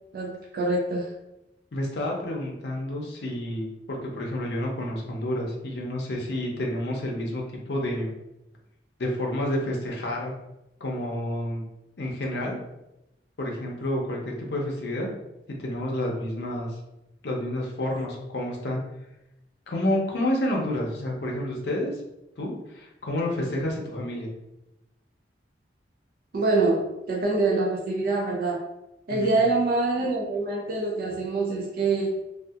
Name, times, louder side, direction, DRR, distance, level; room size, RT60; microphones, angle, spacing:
voice 1, 0.1-1.1 26.3-28.7 29.1-32.2, right 3 dB, 50° right, -3 dB, 0.4 m, -25 dB
voice 2, 1.7-8.1 9.0-10.3 10.8-11.6 12.0-12.6 13.4-15.1 15.6-16.8 17.2-18.8 19.7-21.9 22.4-24.3 29.1-29.3, left 1 dB, 65° left, -1 dB, 0.6 m, -29 dB
2.6 x 2.3 x 2.3 m, 0.91 s
head